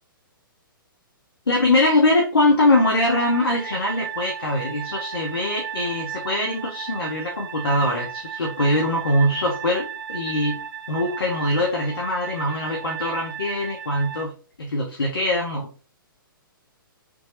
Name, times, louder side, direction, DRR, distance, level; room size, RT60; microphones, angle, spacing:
voice 1, 1.5-10.6 10.9-15.7, left 1 dB, 85° left, 0 dB, 0.8 m, -22 dB
sound 1, 2.7-14.2, right 8 dB, 70° right, 0.4 m, -35 dB
3.5 x 2.0 x 3.2 m, 0.39 s
figure-of-eight pair, 125°, 12 cm